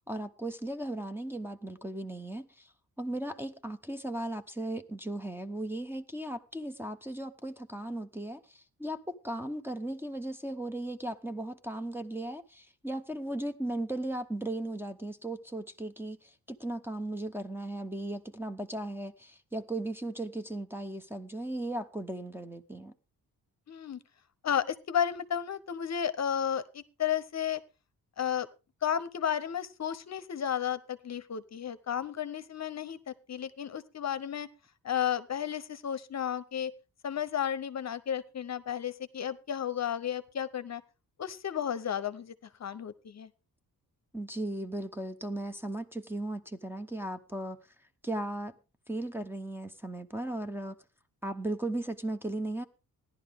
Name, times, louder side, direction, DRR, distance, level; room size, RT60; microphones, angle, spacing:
voice 1, 0.1-2.7 3.0-22.9 44.1-47.6 48.0-48.5 48.9-50.8 51.2-52.6, right 1 dB, 5° right, 3 dB, 0.8 m, -36 dB
voice 2, 23.7-24.0 24.4-27.6 28.2-28.5 28.8-34.5 34.8-36.7 37.0-40.8 41.2-43.3, left 9 dB, 50° left, 14 dB, 0.8 m, -33 dB
16.0 x 11.0 x 3.6 m, 0.31 s
wide cardioid pair, 135°, 36 cm